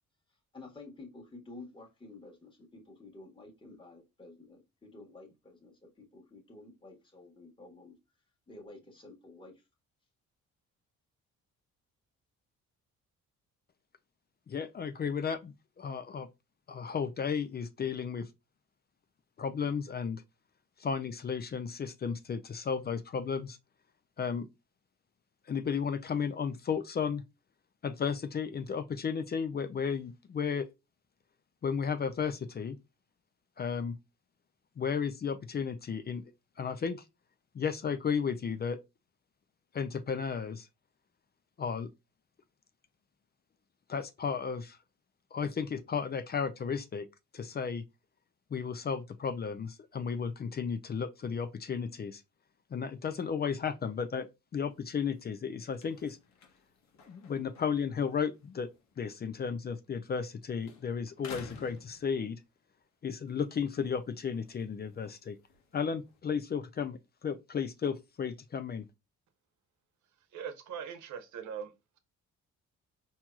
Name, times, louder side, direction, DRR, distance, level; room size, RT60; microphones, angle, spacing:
voice 1, 0.5-7.9 8.5-9.6, left 2 dB, 15° left, 1.5 m, -51 dB
voice 2, 14.5-16.3 16.7-18.3 19.4-20.2 20.8-23.6 24.2-24.5 25.5-27.2 27.8-30.7 31.6-32.8 33.6-34.0 34.8-36.3 36.6-37.0 37.5-38.8 39.7-40.7 41.6-41.9 43.9-44.8 45.3-47.1 47.3-47.8 48.5-52.2 52.7-56.2 57.1-58.7 59.0-62.4 63.0-65.4 65.7-68.9, left 6 dB, 35° left, 0.5 m, -34 dB
sound 1, 54.7-60.3 60.6-62.6 63.1-66.2, left 5 dB, 65° left, 1.0 m, -55 dB
voice 3, 70.3-72.0, right 7 dB, 75° right, 1.0 m, -41 dB
4.4 x 2.8 x 2.3 m
cardioid pair, 90°, 30 cm